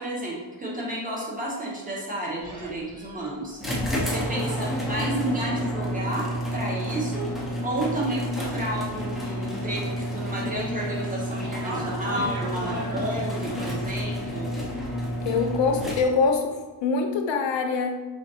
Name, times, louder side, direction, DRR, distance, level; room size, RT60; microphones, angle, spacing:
voice 1, 0.0-3.6 4.1-7.3 7.6-14.5, right 1 dB, 20° right, -4 dB, 1.1 m, -31 dB
sound 1, 2.4-8.2 8.4-9.7 10.0-13.3, right 2 dB, 40° right, 0.9 m, -41 dB
sound 2, 3.6-16.4, equal, ahead, 0.6 m, -30 dB
voice 2, 15.2-18.1, left 4 dB, 70° left, 5 dB, 0.7 m, -24 dB
5.0 x 2.6 x 2.7 m, 1.3 s
cardioid pair, 110°, 45 cm